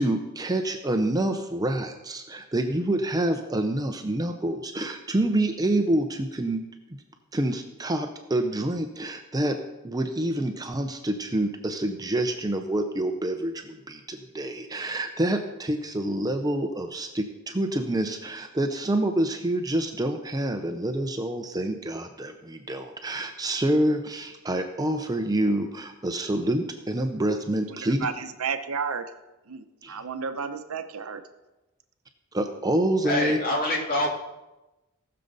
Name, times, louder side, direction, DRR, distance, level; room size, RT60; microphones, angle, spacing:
voice 1, 0.0-6.6 7.3-9.6 9.8-28.0 29.8-30.0 32.3-33.4, right 1 dB, 15° right, 6 dB, 0.6 m, -27 dB
voice 2, 27.7-29.1 29.5-31.2, right 5 dB, 70° right, 9 dB, 0.8 m, -32 dB
voice 3, 33.0-34.1, left 1 dB, 45° left, -1 dB, 2.3 m, -25 dB
18.5 x 6.7 x 4.0 m, 1.0 s
head